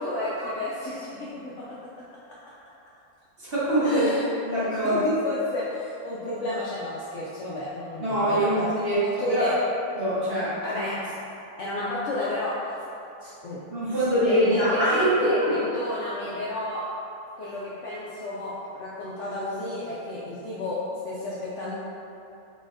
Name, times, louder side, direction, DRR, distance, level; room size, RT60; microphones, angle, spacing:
voice 1, 0.0-1.6 3.8-4.2 4.5-8.6 9.2-9.5 10.6-11.1 11.6-12.7 13.2-13.6 14.2-16.8 17.4-20.8 21.0-21.7, left 1 dB, 70° left, -7 dB, 0.7 m, -31 dB
voice 2, 3.4-4.1 4.4-5.0 8.0-9.6 10.0-10.8 13.7-15.5, equal, 45° right, -11 dB, 1.2 m, -24 dB
3.9 x 3.5 x 2.6 m, 2.8 s
omnidirectional pair, 1.6 m